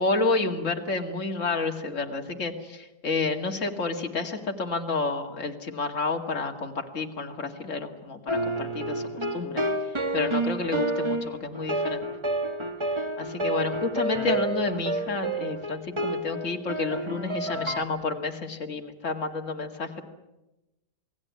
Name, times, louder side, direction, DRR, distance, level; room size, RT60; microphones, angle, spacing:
voice 1, 0.0-12.1 13.2-20.0, left 3 dB, 45° left, 3 dB, 2.5 m, -30 dB
sound 1, 8.3-17.8, right 1 dB, 15° right, 1.7 m, -29 dB
28.5 x 18.5 x 9.5 m, 0.99 s
omnidirectional pair, 1.8 m